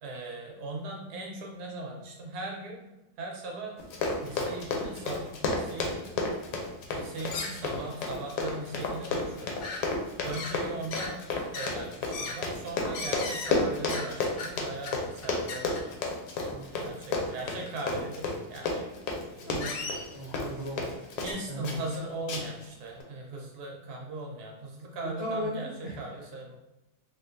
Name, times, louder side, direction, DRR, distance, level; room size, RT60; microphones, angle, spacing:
voice 1, 0.0-2.8 3.2-3.8 4.2-6.2 6.9-9.6 10.2-11.2 11.5-15.8 16.8-18.9 19.3-19.9 21.2-26.6, right 2 dB, 75° right, 0 dB, 1.2 m, -39 dB
Run, 3.8-21.4 21.6-22.0 22.3-22.6 23.0-23.1, left 3 dB, 90° left, 1.2 m, -32 dB
sound 1, 7.3-8.0 8.3-8.4 8.9-9.0 9.2-9.8 10.3-10.6 10.9-11.1 11.5-11.7 12.1-12.4 12.9-13.6 13.9-14.1 14.4-14.5 14.9-15.0 15.2-15.8 17.2-17.3 17.7-17.8 18.6-18.7 19.6-20.4 21.3-21.4, left 3 dB, 70° left, 1.0 m, -37 dB
voice 2, 16.5-16.9 19.5-21.0 21.5-21.8 25.2-26.0, equal, 55° left, -5 dB, 0.7 m, -37 dB
3.6 x 2.4 x 2.5 m, 1.0 s
omnidirectional pair, 1.7 m